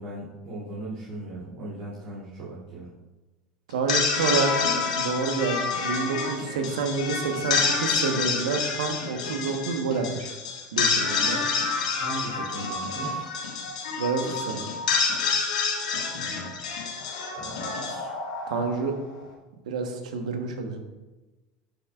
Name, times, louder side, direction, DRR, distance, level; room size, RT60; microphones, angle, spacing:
voice 1, 0.0-2.9 12.0-13.3 16.1-16.5 17.4-18.1, right 2 dB, 60° right, -8 dB, 2.7 m, -38 dB
sound 1, 3.7-19.0, left 5 dB, 85° left, 1.7 m, -28 dB
voice 2, 3.7-10.3 10.7-11.4 14.0-14.7 18.5-18.9 19.7-20.8, right 4 dB, 85° right, 5 dB, 1.1 m, -28 dB
11.5 x 6.0 x 2.4 m, 1.1 s
hypercardioid pair, 85°, 4 cm